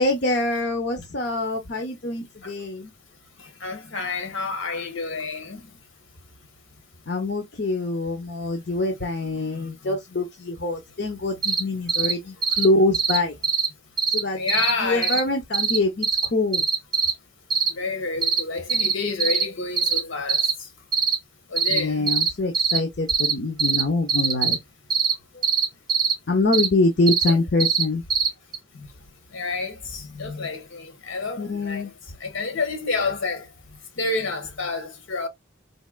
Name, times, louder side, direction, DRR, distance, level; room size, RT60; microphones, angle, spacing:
voice 1, 0.0-2.9 7.1-13.3 14.1-16.7 21.7-24.6 25.3-25.4 26.3-28.0 31.4-31.9, left 2 dB, 55° left, 0.8 m, -25 dB
voice 2, 3.6-5.7 9.6-10.0 14.4-15.2 17.7-20.4 21.5-22.1 27.3-27.4 28.7-28.9 29.3-31.8 32.2-33.4 34.0-35.3, left 3 dB, 75° left, 1.2 m, -29 dB
sound 1, 11.4-11.6 11.9-12.1 12.4-12.6 12.9-13.2 13.4-13.7 14.0-14.2 14.5-14.7 15.0-15.2 15.5-15.8 16.0-16.3 16.5-17.1 17.5-17.7 18.2-18.4 18.7-18.9 19.2-19.4 19.8-20.0 20.3-20.5 20.9-21.2 21.6-21.8 22.1-22.3 22.5-22.8 23.1-23.3 23.6-23.8 24.1-24.6 24.9-25.1 25.4-26.1 26.5-26.7 27.1-27.3 27.6-27.8 28.1-28.3 28.5-28.6, right 5 dB, 20° right, 0.7 m, -21 dB
4.2 x 2.9 x 2.3 m
head